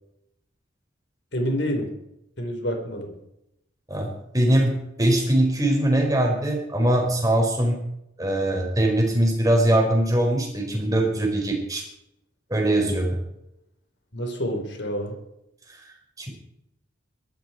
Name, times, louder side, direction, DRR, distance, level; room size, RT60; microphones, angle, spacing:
voice 1, 1.3-1.9 2.4-3.1 14.1-15.2, equal, 60° left, 3 dB, 4.5 m, -28 dB
voice 2, 4.3-7.8 8.2-11.8 12.5-13.2 16.2-16.3, right 1 dB, 20° right, 1 dB, 4.6 m, -21 dB
21.5 x 13.5 x 4.6 m, 0.82 s
head